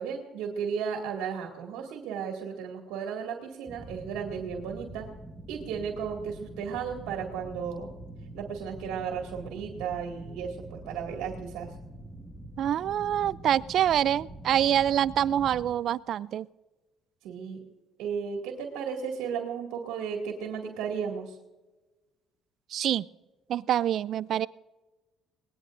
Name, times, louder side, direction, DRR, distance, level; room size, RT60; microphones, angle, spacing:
voice 1, 0.0-5.1 5.5-7.9 8.3-11.7 17.2-17.6 18.0-21.4, right 7 dB, 85° right, 1 dB, 2.1 m, -34 dB
sound 1, 3.7-15.7, right 1 dB, 5° left, 1.9 m, -45 dB
voice 2, 12.6-16.5 22.7-23.1 23.5-24.5, right 10 dB, 65° right, 20 dB, 0.4 m, -26 dB
22.0 x 19.0 x 2.6 m, 1.2 s
cardioid pair, 90°, 0 cm